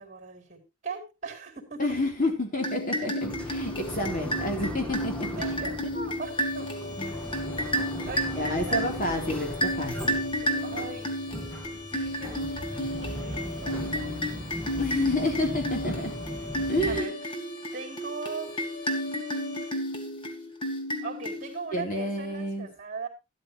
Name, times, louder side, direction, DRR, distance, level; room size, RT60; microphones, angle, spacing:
voice 1, 0.0-2.0 5.2-6.7 8.1-8.9 10.6-11.2 11.9-14.1 16.9-17.1 17.7-18.5 21.0-23.1, right 4 dB, 35° right, 5 dB, 4.2 m, -39 dB
voice 2, 1.8-5.4 5.9-6.1 7.0-7.1 8.3-10.1 14.8-16.1 16.7-17.0 21.7-22.7, left 1 dB, 40° left, 2 dB, 4.0 m, -29 dB
sound 1, 2.6-21.8, equal, 25° left, 2.0 m, -32 dB
sound 2, 3.2-17.0, equal, 5° left, 2.1 m, -38 dB
sound 3, 6.2-19.7, left 2 dB, 60° left, 3.4 m, -43 dB
12.5 x 12.5 x 3.2 m, 0.26 s
head